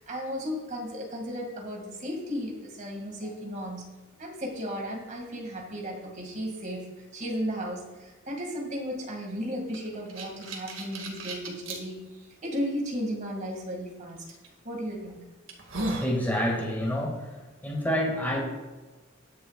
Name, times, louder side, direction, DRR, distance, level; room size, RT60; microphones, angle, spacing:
voice 1, 0.0-3.8 4.2-14.2 14.6-15.2, equal, 40° right, 0 dB, 2.2 m, -35 dB
sound 1, 9.7-11.8 12.5-12.6 14.3-14.5 15.0-15.1 15.5-16.1, right 1 dB, 80° right, 2.0 m, -34 dB
voice 2, 16.0-17.2 17.6-18.4, equal, 10° left, -2 dB, 2.0 m, -27 dB
20.5 x 6.9 x 2.4 m, 1.2 s
head